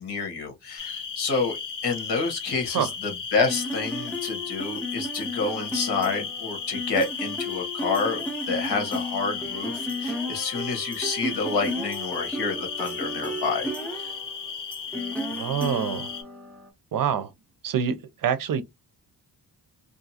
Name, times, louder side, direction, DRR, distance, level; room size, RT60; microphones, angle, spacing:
voice 1, 0.0-14.2, left 4 dB, 75° left, 1.2 m, -29 dB
sound 1, 0.8-16.2, left 6 dB, 55° left, 0.7 m, -35 dB
sound 2, 3.5-16.7, left 1 dB, 5° left, 0.5 m, -34 dB
voice 2, 15.3-16.1 16.9-17.3 17.6-18.6, right 8 dB, 60° right, 0.5 m, -26 dB
2.6 x 2.4 x 2.7 m
wide cardioid pair, 120°, 39 cm